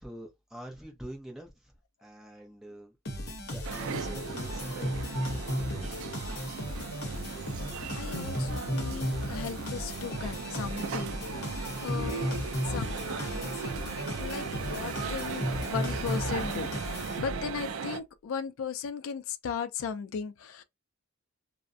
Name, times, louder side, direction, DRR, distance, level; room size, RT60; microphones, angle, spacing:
voice 1, 0.0-1.5 2.0-3.0 3.5-4.9 5.6-5.9, right 1 dB, ahead, 0.6 m, -45 dB
sound 1, 3.0-17.6, equal, 50° left, 0.8 m, -35 dB
sound 2, 3.6-18.0, right 5 dB, 65° right, 0.4 m, -38 dB
voice 2, 8.0-11.1 11.5-13.5 14.2-16.7 17.2-20.6, left 6 dB, 65° left, 0.3 m, -37 dB
2.4 x 2.0 x 2.5 m
head